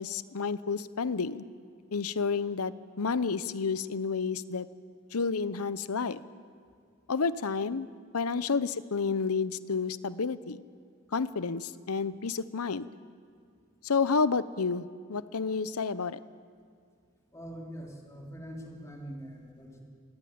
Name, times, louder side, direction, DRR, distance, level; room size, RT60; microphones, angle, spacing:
voice 1, 0.0-1.4 1.9-4.7 5.1-6.2 7.1-7.9 8.1-10.6 11.1-12.9 13.8-16.2, left 5 dB, 85° left, 15 dB, 0.8 m, -30 dB
voice 2, 17.3-19.8, equal, 15° left, -1 dB, 3.6 m, -43 dB
22.5 x 20.0 x 8.7 m, 2.2 s
head